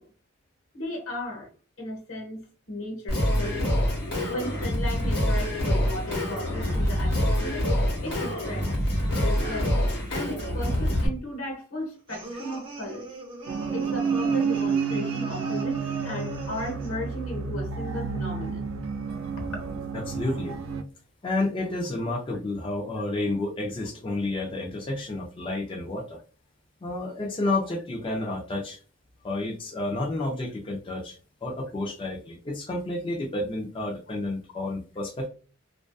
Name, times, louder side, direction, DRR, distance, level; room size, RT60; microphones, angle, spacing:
voice 1, 0.7-1.5 1.8-2.4 2.7-3.7 4.3-7.6 8.0-8.7 9.2-9.7 10.1-13.1 13.7-15.8 16.0-18.7, left 1 dB, 85° left, 1.0 m, -35 dB
Singing, 3.1-11.1, equal, 55° left, 1.1 m, -26 dB
sound 1, 12.1-17.0, right 3 dB, 25° right, 0.6 m, -40 dB
sound 2, 13.5-20.8, right 5 dB, 85° right, 0.4 m, -30 dB
voice 2, 19.9-20.6 21.2-26.2 26.8-28.8 29.2-35.3, left 2 dB, 25° left, 0.3 m, -30 dB
2.5 x 2.3 x 2.2 m
head